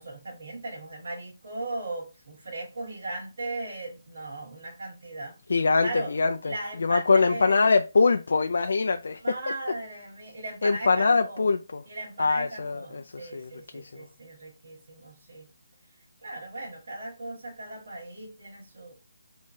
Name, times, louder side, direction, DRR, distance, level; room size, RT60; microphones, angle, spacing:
voice 1, 0.0-5.3 5.8-6.1 6.4-7.6 9.2-11.5 11.9-15.5 16.2-18.9, right 2 dB, 55° right, 1.4 m, -38 dB
voice 2, 5.5-6.5 6.8-9.2 10.6-11.8 12.2-14.1, left 4 dB, 60° left, 0.3 m, -23 dB
3.7 x 3.0 x 2.7 m
hypercardioid pair, 175°, 0 cm